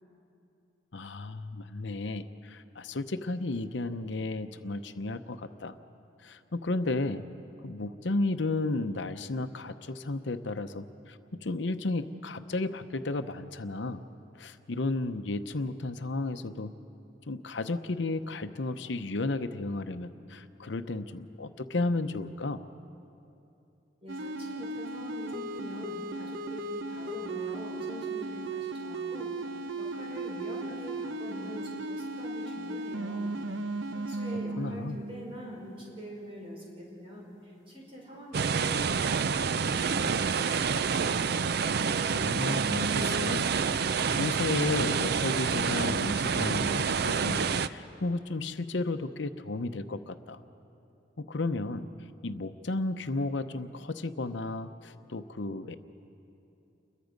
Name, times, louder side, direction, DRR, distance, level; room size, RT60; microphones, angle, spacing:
voice 1, 0.9-5.7 6.2-7.2 7.6-14.1 14.4-16.7 17.3-22.7 34.3-35.0 42.1-50.4 51.2-51.9 52.2-55.8, left 2 dB, 70° left, 9 dB, 0.8 m, -33 dB
voice 2, 24.0-33.4 33.9-41.4, equal, 30° right, -3 dB, 5.5 m, -44 dB
sound 1, 24.1-35.8 42.1-43.4, right 2 dB, 90° right, 0.8 m, -36 dB
sound 2, 38.3-47.7, right 6 dB, 60° right, 0.5 m, -28 dB
29.0 x 22.0 x 5.2 m, 2.8 s
head